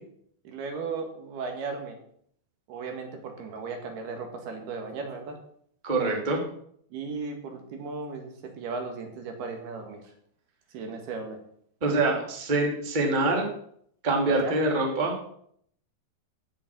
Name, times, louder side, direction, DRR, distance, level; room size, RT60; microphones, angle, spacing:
voice 1, 0.5-2.0 2.7-5.4 6.9-10.0 10.7-11.4 14.3-14.6, right 4 dB, 70° right, 4 dB, 3.7 m, -36 dB
voice 2, 5.8-6.4 11.8-13.4 14.0-15.2, right 2 dB, 15° right, 1 dB, 1.9 m, -25 dB
16.0 x 7.1 x 6.1 m, 0.65 s
omnidirectional pair, 4.9 m